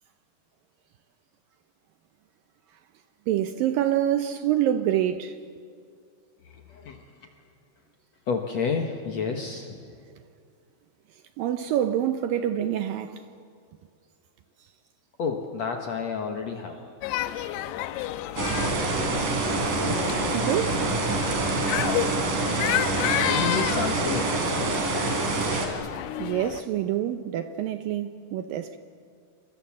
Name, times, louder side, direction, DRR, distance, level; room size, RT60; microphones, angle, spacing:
voice 1, 3.3-5.4 11.4-13.2 20.3-20.8 26.2-28.8, right 11 dB, 75° right, 2.1 m, -26 dB
voice 2, 6.7-7.0 8.3-9.8 15.2-16.9 23.2-24.3, left 5 dB, 60° left, 1.9 m, -30 dB
sound 1, 17.0-26.6, left 13 dB, 85° left, 2.9 m, -31 dB
sound 2, 18.4-25.7, right 3 dB, 55° right, 4.3 m, -26 dB
28.5 x 24.5 x 7.5 m
omnidirectional pair, 4.7 m